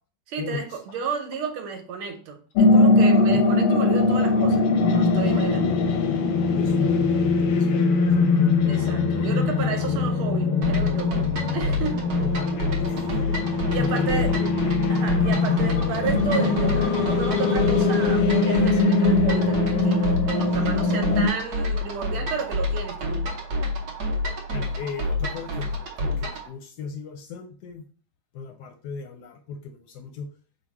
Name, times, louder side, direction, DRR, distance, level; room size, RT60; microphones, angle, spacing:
voice 1, 0.3-5.8 8.7-11.2 11.5-12.0 13.7-14.4 14.9-23.3, right 5 dB, 90° right, 4 dB, 1.6 m, -32 dB
sound 1, 2.6-21.3, left 3 dB, 90° left, 1.5 m, -21 dB
voice 2, 6.5-8.1 9.8-10.1 11.5-11.6 12.2-13.4 13.8-14.5 15.5-15.7 24.5-27.8 28.3-30.3, left 5 dB, 70° left, 5 dB, 1.0 m, -36 dB
sound 2, 10.6-26.5, left 1 dB, 60° right, 1.2 m, -29 dB
4.1 x 2.3 x 4.6 m, 0.40 s
omnidirectional pair, 2.2 m